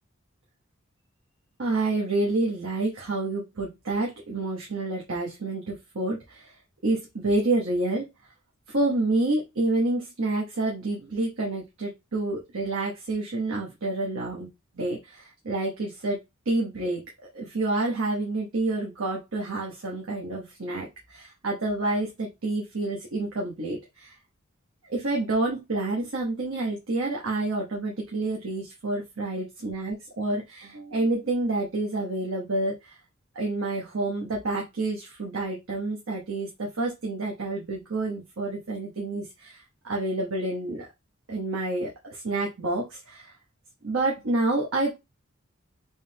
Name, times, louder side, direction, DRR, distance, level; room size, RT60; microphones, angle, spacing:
voice 1, 1.6-6.5 6.8-8.1 8.7-14.5 14.8-16.2 16.5-17.0 17.3-24.1 24.9-32.9 33.3-40.9 41.3-43.3 43.8-45.0, right 2 dB, 80° right, -2 dB, 1.0 m, -28 dB
3.8 x 3.1 x 2.8 m, 0.22 s
head